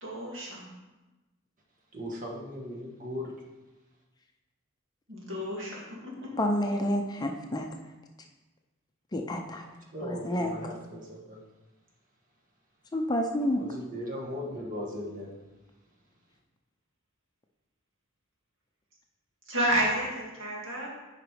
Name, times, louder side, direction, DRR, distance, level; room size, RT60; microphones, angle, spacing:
voice 1, 0.0-0.7 5.1-6.3 19.5-20.9, right 1 dB, 65° right, -4 dB, 2.4 m, -31 dB
voice 2, 1.9-3.4 9.9-11.4 13.6-15.3, left 1 dB, 40° right, -2 dB, 1.5 m, -38 dB
voice 3, 6.4-7.7 9.1-9.6 10.3-10.5 12.9-13.6, left 1 dB, 20° left, 2 dB, 0.6 m, -28 dB
8.1 x 5.0 x 4.8 m, 1.1 s
head